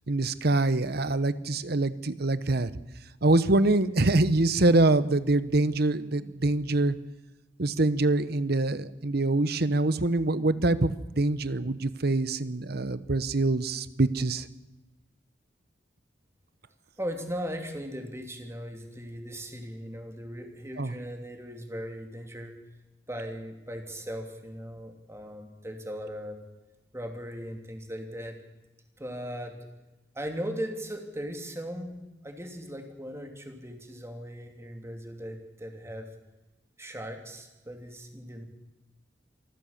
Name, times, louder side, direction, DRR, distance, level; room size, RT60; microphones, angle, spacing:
voice 1, 0.1-2.7 3.2-7.0 7.6-14.5 20.8-20.9, right 2 dB, 60° right, 15 dB, 1.0 m, -25 dB
voice 2, 17.0-22.5 23.1-26.4 26.9-28.4 29.0-29.6 30.1-32.0 32.2-36.1 36.8-38.4, equal, 15° right, 4 dB, 2.9 m, -38 dB
25.5 x 14.5 x 7.3 m, 1.1 s
head